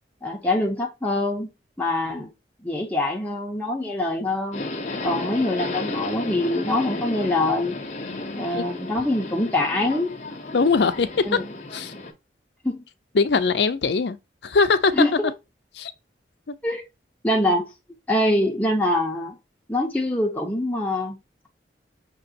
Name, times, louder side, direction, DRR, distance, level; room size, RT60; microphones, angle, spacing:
voice 1, 0.2-1.5 1.8-2.3 2.6-4.6 5.0-7.8 8.4-10.2 11.2-11.5 12.6-12.8 14.9-15.2 16.6-16.8 17.2-17.7 18.1-19.4 19.7-21.2, left 1 dB, 10° left, 0.8 m, -24 dB
Subway metro underground, 4.5-12.1, left 2 dB, 40° left, 0.8 m, -33 dB
voice 2, 8.0-8.6 10.5-11.4 11.7-11.9 13.1-14.2 14.4-14.9 15.7-15.9, left 4 dB, 70° left, 0.5 m, -21 dB
5.9 x 3.0 x 2.8 m
head